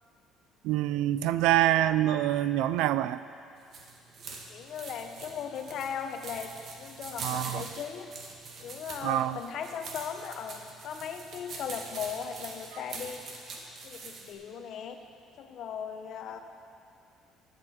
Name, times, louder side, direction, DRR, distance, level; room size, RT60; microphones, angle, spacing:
voice 1, 0.6-3.2 7.2-7.6 9.0-9.4, right 13 dB, 85° right, 14 dB, 0.4 m, -26 dB
sound 1, 3.6-14.3, right 3 dB, 50° right, 1.6 m, -44 dB
voice 2, 4.5-6.5 6.8-8.1 8.6-13.2 13.8-15.0 15.4-16.4, left 7 dB, 60° left, 7 dB, 0.9 m, -38 dB
15.0 x 9.4 x 4.3 m, 2.5 s
cardioid pair, 115°, 0 cm